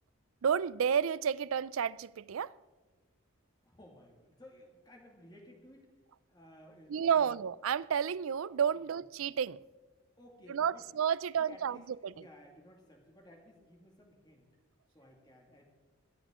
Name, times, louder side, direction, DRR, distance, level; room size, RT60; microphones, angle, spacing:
voice 1, 0.4-2.5 6.9-9.6 10.5-12.1, right 7 dB, 85° right, 0.4 m, -31 dB
voice 2, 3.6-5.9 6.3-7.3 10.2-10.9 11.4-14.5 14.9-15.6, left 1 dB, 20° left, 2.1 m, -57 dB
20.0 x 13.5 x 3.7 m
head